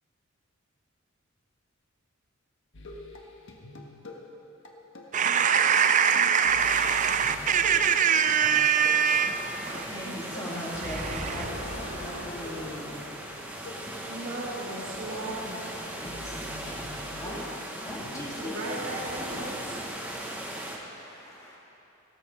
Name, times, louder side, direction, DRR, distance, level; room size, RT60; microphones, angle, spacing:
sound 1, 2.7-19.5, left 2 dB, 65° left, 1.4 m, -46 dB
voice 1, 5.1-9.9 10.8-11.4, right 7 dB, 40° right, 0.5 m, -23 dB
sound 2, 6.6-20.8, right 1 dB, 10° right, 1.3 m, -38 dB
voice 2, 9.9-13.0 15.9-16.7 17.1-17.4 17.8-18.6 19.9-21.6, left 1 dB, 15° left, 2.9 m, -40 dB
voice 3, 10.8-13.8 14.1-15.6 18.4-19.8, right 1 dB, 65° right, 3.6 m, -38 dB
17.5 x 14.0 x 3.5 m
head